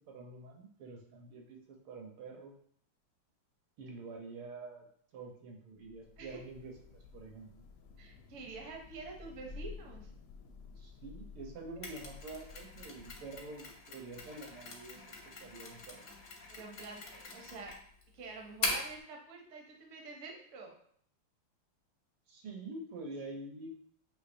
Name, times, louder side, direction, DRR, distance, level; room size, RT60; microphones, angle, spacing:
voice 1, 0.1-2.5 3.8-4.9 5.1-7.6 10.8-15.0 15.3-16.0 22.3-23.7, right 3 dB, 80° right, 1 dB, 1.7 m, -47 dB
Thunder / Rain, 5.8-13.8, left 4 dB, 85° left, 1.5 m, -52 dB
voice 2, 8.0-10.1 16.5-17.8 18.1-20.7, right 3 dB, 60° right, 1 dB, 0.7 m, -47 dB
Mechanisms, 11.8-19.0, left 3 dB, 60° left, 0.8 m, -42 dB
6.4 x 2.9 x 2.6 m, 0.63 s
omnidirectional pair, 2.4 m